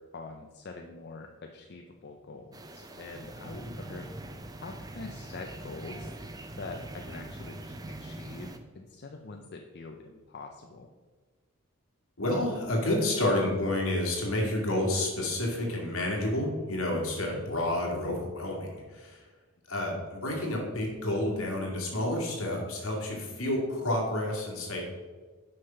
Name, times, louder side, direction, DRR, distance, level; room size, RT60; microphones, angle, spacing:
voice 1, 0.1-4.1 4.6-6.1 6.6-10.9, left 3 dB, 50° left, 3 dB, 0.5 m, -44 dB
sound 1, 2.5-8.6, right 1 dB, 15° right, 0.5 m, -43 dB
voice 2, 12.2-19.2 19.7-24.8, left 1 dB, 70° left, -1 dB, 2.1 m, -30 dB
6.5 x 5.6 x 5.7 m, 1.4 s
head